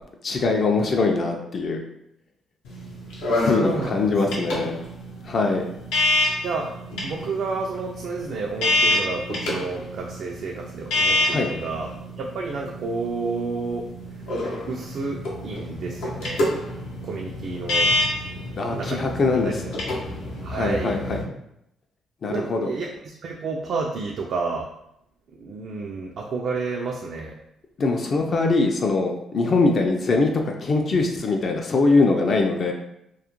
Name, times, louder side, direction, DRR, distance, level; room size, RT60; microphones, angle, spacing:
voice 1, 0.2-1.8 3.4-4.8 5.2-5.6 11.2-11.5 18.6-19.6 20.5-21.2 22.2-22.7 27.8-32.7, left 3 dB, 50° left, 2 dB, 0.3 m, -22 dB
sound 1, 2.6-21.2, left 2 dB, 90° left, 0.6 m, -27 dB
voice 2, 3.3-4.1 6.4-6.7 7.0-13.8 14.7-15.2 15.4-16.4 17.0-17.9 18.7-19.1 19.4-19.5 20.4-21.0 22.3-24.7 25.4-27.3, right 4 dB, 65° right, -1 dB, 0.3 m, -30 dB
2.3 x 2.1 x 2.9 m, 0.79 s
cardioid pair, 90°, 0 cm